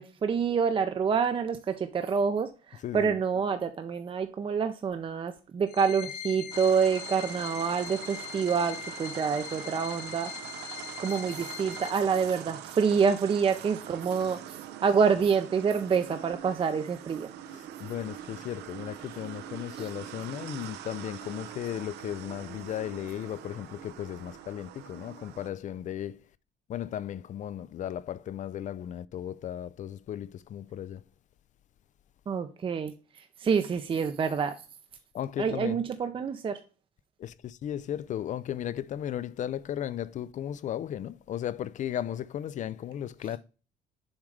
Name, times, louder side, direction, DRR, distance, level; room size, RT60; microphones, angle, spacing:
voice 1, 0.0-10.3 11.0-14.4 14.8-17.3 19.8-19.9 32.3-32.9 33.4-34.5 35.4-36.6, right 6 dB, 30° right, 0.6 m, -27 dB
voice 2, 2.8-3.2 17.8-26.1 26.7-31.0 35.1-35.8 37.2-37.3 37.6-43.4, left 10 dB, 45° left, 0.4 m, -35 dB
sound 1, 5.7-11.9, left 10 dB, 65° left, 1.0 m, -41 dB
sound 2, 6.5-25.5, right 11 dB, 80° right, 0.7 m, -43 dB
7.2 x 3.2 x 4.9 m
cardioid pair, 110°, 17 cm